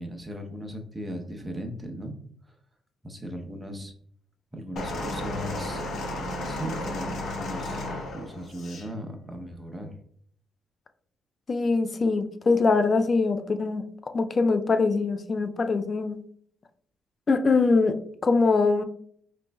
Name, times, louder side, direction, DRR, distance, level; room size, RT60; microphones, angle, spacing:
voice 1, 0.0-2.2 2.4-2.5 3.0-3.9 4.5-5.8 6.4-7.8 8.1-9.9, equal, 15° right, 3 dB, 0.7 m, -37 dB
sound 1, 4.8-8.9 9.8-9.9, left 1 dB, 65° left, 0.8 m, -33 dB
voice 2, 11.5-13.8 14.1-16.2 17.3-18.8, left 4 dB, 40° left, 9 dB, 0.4 m, -23 dB
5.0 x 3.1 x 2.2 m, 0.62 s
cardioid pair, 90°, 0 cm